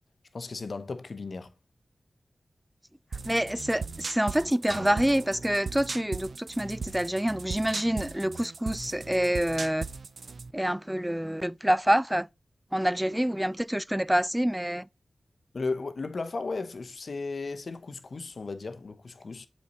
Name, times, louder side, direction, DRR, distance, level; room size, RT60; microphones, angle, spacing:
voice 1, 0.3-1.5 15.5-19.5, left 3 dB, 65° left, 0.9 m, -35 dB
sound 1, 3.1-10.5, right 4 dB, 75° right, 0.5 m, -38 dB
voice 2, 3.2-9.9 10.5-12.3 12.7-14.9, equal, 10° right, 0.3 m, -27 dB
sound 2, 4.7-6.6, right 1 dB, 25° right, 1.9 m, -43 dB
7.4 x 4.3 x 3.8 m
cardioid pair, 50°, 0 cm